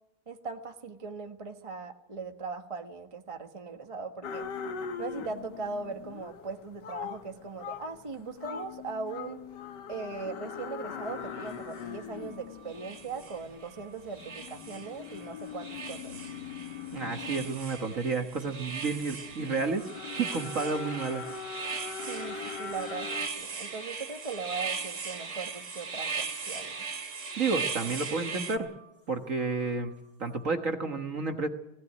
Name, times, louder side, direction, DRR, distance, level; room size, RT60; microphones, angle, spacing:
voice 1, 0.3-4.4 5.0-9.4 9.9-16.2 22.1-23.1 23.3-26.9, right 4 dB, 20° right, 5 dB, 1.2 m, -39 dB
sound 1, 4.2-23.3, left 7 dB, 60° left, 1.7 m, -41 dB
sound 2, 11.4-11.5 12.7-13.7 14.2-15.3 15.6-28.6, right 5 dB, 60° right, 2.8 m, -38 dB
sound 3, 11.5-30.5, right 6 dB, 85° left, 6.2 m, -60 dB
voice 2, 16.9-21.2 27.4-28.7 29.1-29.9 30.2-31.5, right 4 dB, 45° right, 5 dB, 1.6 m, -31 dB
19.0 x 17.0 x 9.6 m, 0.89 s
omnidirectional pair, 2.2 m